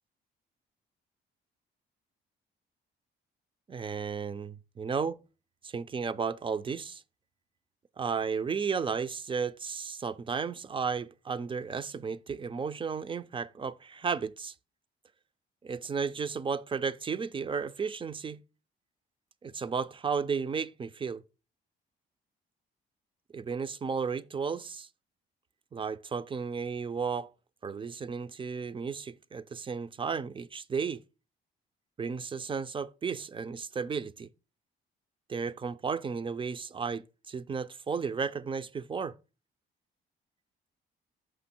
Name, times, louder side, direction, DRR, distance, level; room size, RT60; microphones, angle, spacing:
voice 1, 3.7-5.2 5.6-7.0 8.0-14.5 15.6-18.4 19.4-21.2 23.3-24.9 25.7-27.3 27.6-31.0 32.0-34.3 35.3-39.1, right 5 dB, 25° right, 0.4 m, -33 dB
6.2 x 5.1 x 4.3 m
cardioid pair, 90°, 20 cm